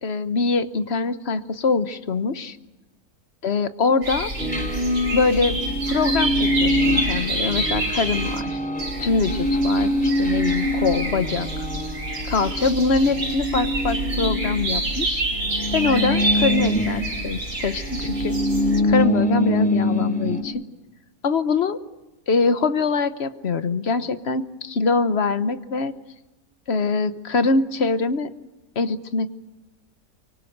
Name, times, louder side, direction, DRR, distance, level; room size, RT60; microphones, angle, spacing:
voice 1, 0.0-2.6 3.4-4.3 5.1-5.6 5.9-8.6 9.0-11.5 12.3-15.2 15.7-18.4 18.8-20.6 21.2-21.8 22.3-26.0 26.7-28.3 28.7-29.3, left 4 dB, 45° left, 11 dB, 1.2 m, -23 dB
sound 1, 4.0-8.4 8.8-18.8, right 2 dB, 75° right, 5.4 m, -28 dB
sound 2, 4.4-15.0 15.3-20.4, left 1 dB, 5° left, 3.2 m, -24 dB
24.5 x 24.0 x 7.9 m, 1.0 s
omnidirectional pair, 1.6 m